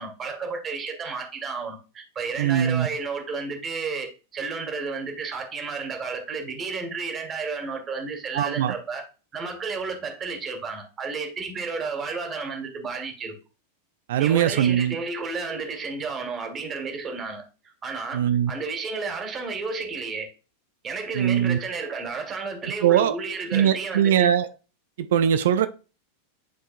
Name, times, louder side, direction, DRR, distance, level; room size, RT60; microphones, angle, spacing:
voice 1, 0.0-9.0 9.3-13.3 14.2-17.4 17.8-20.3 20.8-24.3, right 4 dB, 25° right, 1.7 m, -32 dB
voice 2, 2.4-2.9 8.3-8.7 14.1-15.0 18.1-18.5 21.1-21.6 22.8-23.2 23.5-24.5 25.0-25.7, right 10 dB, 55° right, 0.4 m, -21 dB
10.5 x 3.6 x 2.5 m
figure-of-eight pair, 90°, 0 cm